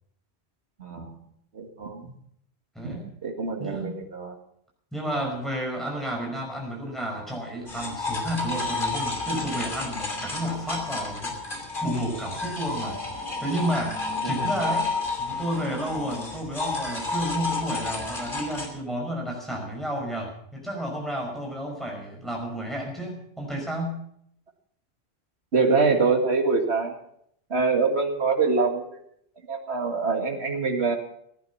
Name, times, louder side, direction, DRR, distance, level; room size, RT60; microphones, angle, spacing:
voice 1, 0.8-1.2 1.5-2.1 2.8-3.0 3.2-4.4 14.2-14.5 25.5-27.0 27.5-28.9 29.5-31.0, right 4 dB, 70° right, 3 dB, 2.3 m, -24 dB
voice 2, 2.8-3.1 3.6-4.0 4.9-11.4 11.8-14.9 15.2-24.0, equal, ahead, -1 dB, 5.3 m, -31 dB
sound 1, 7.7-18.7, left 3 dB, 50° left, 3.1 m, -31 dB
16.0 x 10.5 x 6.9 m, 0.69 s
omnidirectional pair, 1.1 m